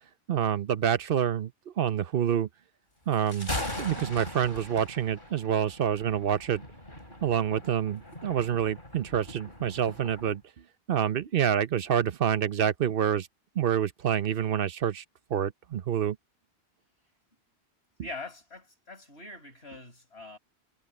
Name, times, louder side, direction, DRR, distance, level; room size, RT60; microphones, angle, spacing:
voice 1, 0.3-1.5 1.8-2.5 3.1-3.5 3.8-6.6 7.2-10.4 10.9-13.3 13.6-15.0 15.3-16.2, right 9 dB, 60° right, 0.8 m, -27 dB
Thunder, 3.1-10.4, left 1 dB, 50° left, 5.8 m, -40 dB
voice 2, 18.0-20.4, left 2 dB, 70° left, 5.5 m, -43 dB
omnidirectional pair, 1.1 m